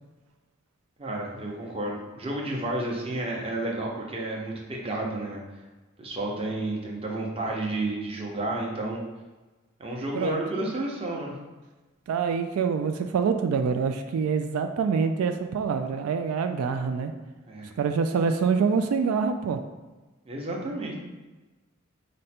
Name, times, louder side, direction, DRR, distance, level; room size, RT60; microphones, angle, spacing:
voice 1, 1.0-5.4 6.0-9.0 9.8-11.3 17.5-17.7 20.3-21.0, right 1 dB, 30° right, -1 dB, 0.8 m, -31 dB
voice 2, 12.1-17.1 17.8-19.6, right 5 dB, 90° right, 7 dB, 0.3 m, -25 dB
5.0 x 2.1 x 4.2 m, 1.2 s
head